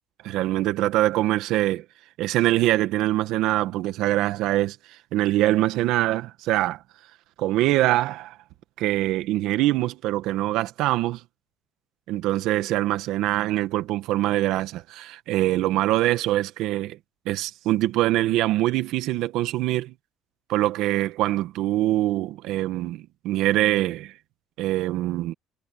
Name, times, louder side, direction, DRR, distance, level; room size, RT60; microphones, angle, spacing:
voice 1, 0.2-1.8 2.2-4.8 5.1-6.8 7.4-8.4 8.8-11.2 12.1-17.0 17.2-19.9 20.5-24.1 24.6-25.3, right 15 dB, 75° right, 1.6 m, -23 dB
cardioid pair, 100°, 0 cm